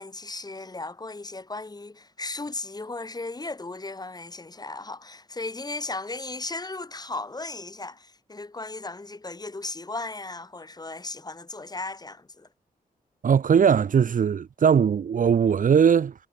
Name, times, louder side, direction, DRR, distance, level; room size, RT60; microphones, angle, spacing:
voice 1, 0.0-12.5, left 3 dB, 25° left, 3.0 m, -36 dB
voice 2, 13.2-16.1, right 7 dB, 60° right, 0.7 m, -20 dB
wide cardioid pair, 100°, 15 cm